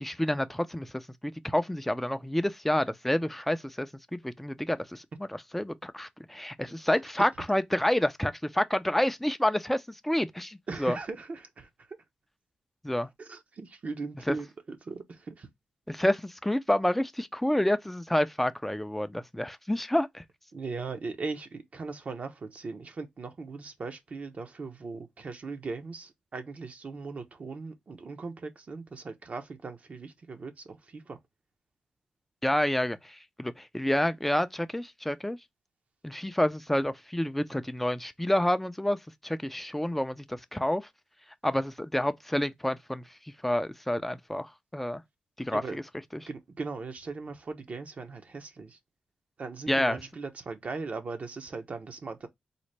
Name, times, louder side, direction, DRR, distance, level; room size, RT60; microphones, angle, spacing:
voice 1, 0.0-11.0 12.8-13.1 14.3-14.4 15.9-20.2 32.4-35.4 36.0-39.0 39.2-40.8 41.4-43.0 43.4-45.0 45.4-45.8 46.1-46.2 49.7-50.0, left 1 dB, 5° left, 0.4 m, -29 dB
voice 2, 10.7-11.9 13.2-15.5 20.5-31.2 45.5-45.8 46.3-48.8 49.4-52.3, right 4 dB, 50° right, 0.7 m, -39 dB
4.0 x 2.0 x 3.2 m
cardioid pair, 70°, 3 cm